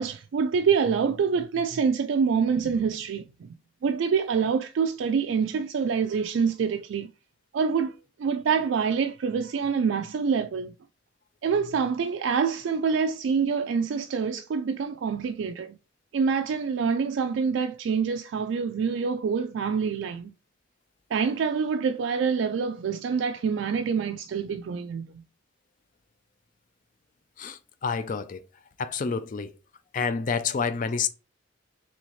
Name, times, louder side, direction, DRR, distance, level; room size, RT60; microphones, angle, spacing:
voice 1, 0.0-3.5 3.8-7.1 7.5-7.9 8.2-10.7 11.4-15.8 16.1-20.3 21.1-25.1, right 6 dB, 75° right, 0.3 m, -26 dB
voice 2, 27.4-28.4 28.8-29.5 29.9-31.1, left 5 dB, 40° left, 0.4 m, -28 dB
4.1 x 3.4 x 3.1 m
head